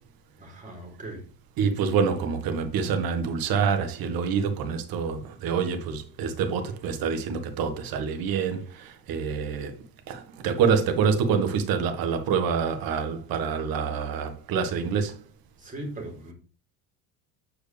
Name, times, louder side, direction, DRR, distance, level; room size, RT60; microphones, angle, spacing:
voice 1, 0.4-1.3 15.6-16.3, right 1 dB, 20° right, 3.1 m, -39 dB
voice 2, 1.6-8.6 9.1-9.7 10.1-15.1, right 6 dB, 60° right, 1.4 m, -26 dB
8.3 x 4.7 x 3.4 m
supercardioid pair, 115°, 41 cm